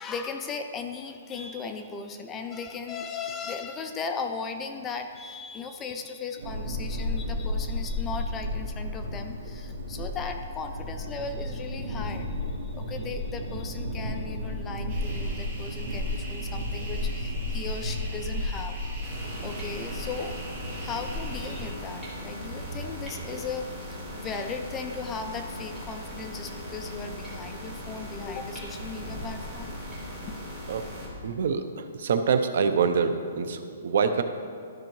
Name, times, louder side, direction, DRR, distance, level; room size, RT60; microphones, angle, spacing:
voice 1, 0.0-18.9 19.4-20.4 20.8-30.4, left 5 dB, 10° left, 5 dB, 0.3 m, -37 dB
sound 1, 6.4-21.7, left 1 dB, 85° right, 1.4 m, -34 dB
voice 2, 6.7-7.5 13.0-13.1 19.3-19.5 23.3-23.4 30.7-30.9 31.2-34.2, right 6 dB, 50° right, 9 dB, 0.5 m, -27 dB
sound 2, 14.9-21.7, left 1 dB, 25° right, 1.8 m, -36 dB
sound 3, 19.0-31.1, equal, 10° right, 1.5 m, -39 dB
13.0 x 5.6 x 3.1 m, 2.2 s
hypercardioid pair, 175°, 0 cm